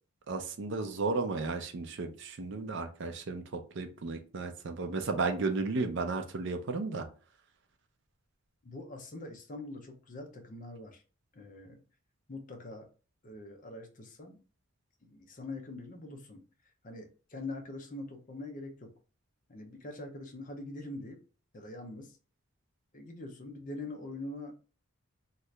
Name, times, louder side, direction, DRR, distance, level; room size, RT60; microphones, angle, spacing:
voice 1, 0.3-7.1, right 3 dB, 55° right, 6 dB, 0.4 m, -34 dB
voice 2, 8.6-11.0 11.3-11.8 12.3-12.9 13.2-14.4 15.0-16.4 16.8-18.9 19.5-21.2 21.5-22.2 22.9-24.5, left 2 dB, 35° left, 4 dB, 0.5 m, -43 dB
2.8 x 2.4 x 3.1 m, 0.36 s
head